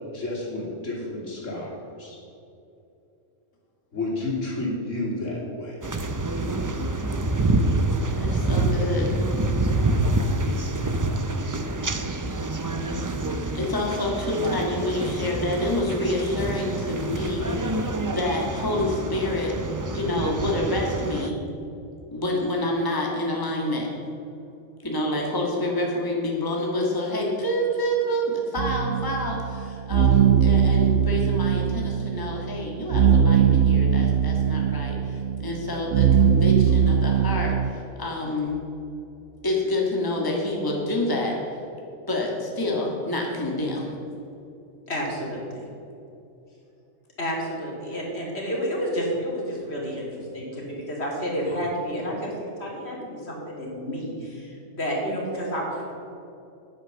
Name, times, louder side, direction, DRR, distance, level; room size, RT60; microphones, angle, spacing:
voice 1, 0.1-2.2 3.9-5.8, left 2 dB, 80° left, -4 dB, 3.2 m, -31 dB
sound 1, 5.8-21.3, right 2 dB, 25° right, 0.4 m, -27 dB
voice 2, 8.1-9.1 13.5-19.6 19.9-21.4 22.1-23.9 24.8-38.6 39.4-41.4 42.1-43.9, left 1 dB, 15° left, -1 dB, 1.7 m, -27 dB
sound 2, 28.6-37.7, right 8 dB, 85° right, 1.0 m, -21 dB
voice 3, 44.9-45.7 47.2-55.9, equal, 55° left, -3 dB, 3.3 m, -30 dB
10.0 x 9.5 x 6.9 m, 2.7 s
omnidirectional pair, 1.3 m